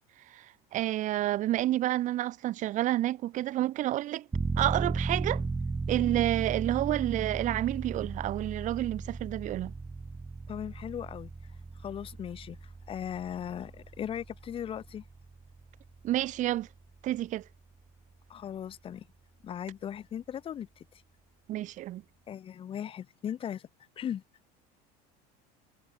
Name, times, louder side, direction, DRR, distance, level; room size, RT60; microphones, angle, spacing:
voice 1, 0.3-4.3 4.6-5.4 5.9-9.7 16.0-16.7 17.0-17.5 21.5-22.0, right 14 dB, 40° right, 3.4 m, -29 dB
sound 1, 4.3-16.8 17.2-17.3, right 3 dB, 10° right, 2.9 m, -36 dB
voice 2, 10.5-11.3 11.8-15.0 18.3-19.1 19.4-21.0 22.3-23.7 24.0-24.2, left 9 dB, 25° left, 4.3 m, -38 dB
cardioid pair, 165°, 20 cm